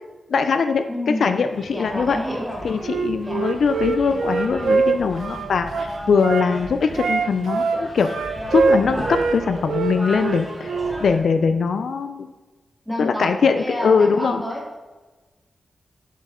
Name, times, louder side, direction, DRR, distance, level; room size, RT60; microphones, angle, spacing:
voice 1, 0.3-2.2 2.6-12.3 13.0-14.4, left 5 dB, 65° left, 8 dB, 0.3 m, -21 dB
voice 2, 0.9-1.3 1.7-2.6 3.2-3.4 12.8-14.8, equal, ahead, -2 dB, 1.5 m, -29 dB
sound 1, 1.5-11.2, equal, 15° right, 1.4 m, -35 dB
Wind instrument woodwind instrument, 2.8-6.5 6.9-9.4 9.7-11.0, right 4 dB, 85° right, 0.5 m, -23 dB
7.5 x 5.3 x 3.7 m, 1.2 s
wide cardioid pair, 160°, 0 cm